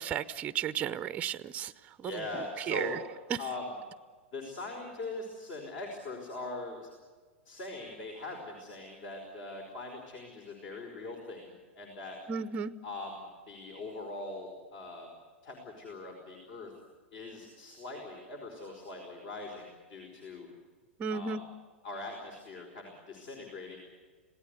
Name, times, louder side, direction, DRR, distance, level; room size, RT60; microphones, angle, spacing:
voice 1, 0.0-1.7 2.0-3.0 3.3-3.4 12.3-12.7 21.0-21.4, right 7 dB, 20° right, 14 dB, 0.7 m, -34 dB
voice 2, 2.0-3.8 4.3-6.9 7.4-12.2 12.8-15.1 15.4-16.7 17.1-20.5 21.1-21.4 21.8-23.8, left 2 dB, 45° left, 2 dB, 4.9 m, -41 dB
27.0 x 18.0 x 8.2 m, 1.5 s
figure-of-eight pair, 100°, 7 cm